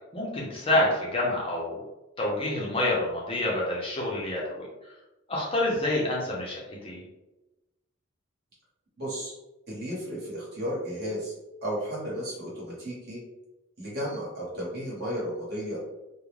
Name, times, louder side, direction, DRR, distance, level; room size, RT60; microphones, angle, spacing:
voice 1, 0.1-0.9 1.1-1.8 2.2-4.7 5.3-7.0, left 1 dB, 25° left, -4 dB, 0.6 m, -27 dB
voice 2, 9.0-9.3 9.7-11.3 11.6-13.2 13.8-15.8, equal, 50° right, -6 dB, 1.1 m, -33 dB
2.4 x 2.0 x 3.1 m, 1.0 s
head